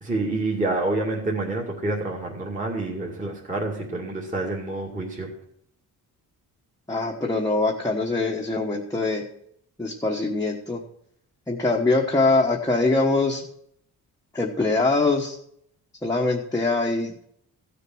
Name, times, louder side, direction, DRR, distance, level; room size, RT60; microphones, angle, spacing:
voice 1, 0.0-5.3, right 2 dB, 20° right, -3 dB, 2.3 m, -28 dB
voice 2, 6.9-9.2 9.8-10.8 11.5-13.4 14.3-15.4 16.0-17.2, left 3 dB, 10° left, -2 dB, 1.2 m, -23 dB
15.0 x 6.8 x 6.1 m, 0.70 s
cardioid pair, 140°, 37 cm